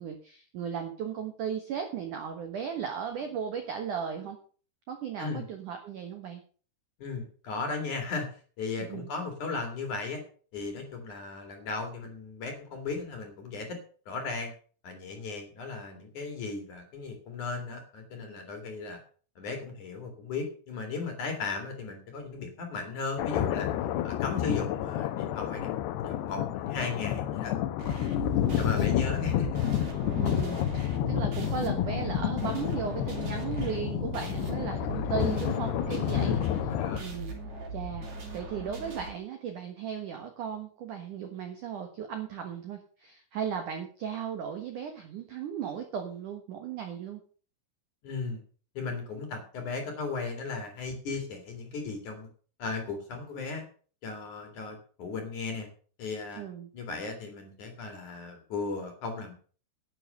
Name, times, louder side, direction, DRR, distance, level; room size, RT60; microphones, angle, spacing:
voice 1, 0.0-4.4 4.9-6.4 8.8-9.1 28.4-29.1 30.2-36.4 37.0-37.4 37.7-47.2 56.4-56.7, right 7 dB, 80° right, 5 dB, 1.8 m, -36 dB
voice 2, 7.0-10.2 10.5-13.8 14.1-14.5 14.8-19.0 19.4-23.7 24.0-27.5 28.6-29.6 36.1-37.1 48.0-48.4 48.7-52.3 52.6-53.6 54.0-55.7 56.0-56.4 56.7-59.3, left 4 dB, 50° left, 4 dB, 2.9 m, -36 dB
sound 1, 23.2-37.0, left 12 dB, 85° left, 2.4 m, -30 dB
sound 2, 27.8-39.1, right 3 dB, 40° right, 4.0 m, -40 dB
11.0 x 8.9 x 6.4 m, 0.42 s
omnidirectional pair, 5.8 m